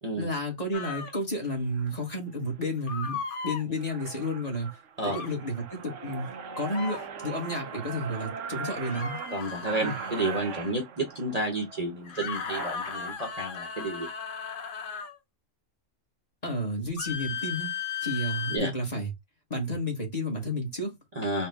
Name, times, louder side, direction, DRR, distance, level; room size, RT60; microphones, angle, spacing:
voice 1, 0.2-4.7 5.0-6.3 6.6-9.2 9.8-9.9 16.4-17.7 18.0-19.1 19.5-21.0, left 1 dB, 30° left, 1.4 m, -31 dB
sound 1, 0.7-1.1 2.9-3.6 5.0-5.3 6.6-7.0 8.8-10.7 12.1-15.2 17.0-18.6, left 6 dB, 50° left, 0.8 m, -36 dB
sound 2, 0.9-1.1 1.8-2.0 2.5-2.9 3.4-3.5 3.7-13.1, right 6 dB, 70° right, 1.0 m, -40 dB
voice 2, 9.3-14.1 18.5-18.7 21.1-21.5, right 2 dB, 35° right, 0.9 m, -31 dB
4.3 x 2.3 x 3.5 m
omnidirectional pair, 1.3 m